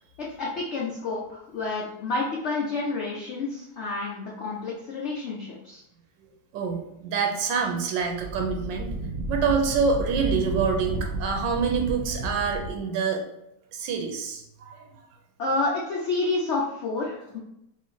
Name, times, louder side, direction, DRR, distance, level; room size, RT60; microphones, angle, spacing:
voice 1, 0.2-5.8 15.4-17.4, left 3 dB, 65° left, -4 dB, 0.7 m, -29 dB
voice 2, 6.5-8.9 9.2-13.2 13.7-14.9, right 5 dB, 90° right, 2 dB, 1.3 m, -26 dB
Wind, 8.0-12.8, right 2 dB, 60° right, 1.0 m, -32 dB
3.2 x 3.0 x 3.8 m, 0.81 s
omnidirectional pair, 2.0 m